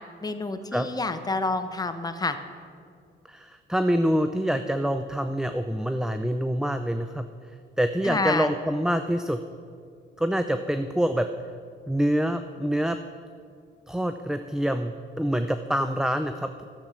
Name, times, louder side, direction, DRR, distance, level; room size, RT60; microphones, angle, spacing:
voice 1, 0.2-2.4 8.0-8.5, left 3 dB, 20° left, 9 dB, 0.8 m, -28 dB
voice 2, 3.3-7.3 7.8-9.4 10.2-11.3 11.9-13.0 13.9-16.6, equal, 5° right, 9 dB, 0.4 m, -26 dB
12.0 x 7.3 x 6.2 m, 2.2 s
cardioid pair, 90°, 20 cm